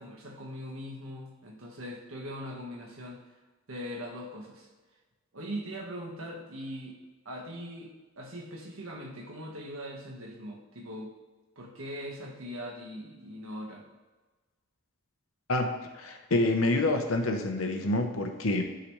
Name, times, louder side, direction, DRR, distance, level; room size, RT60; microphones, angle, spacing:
voice 1, 0.0-3.2 3.7-4.7 5.3-7.0 7.2-11.1 11.5-13.8, equal, 90° right, -1 dB, 1.4 m, -41 dB
voice 2, 15.5-18.6, left 2 dB, 90° left, 4 dB, 0.9 m, -27 dB
11.5 x 4.0 x 3.2 m, 1.2 s
head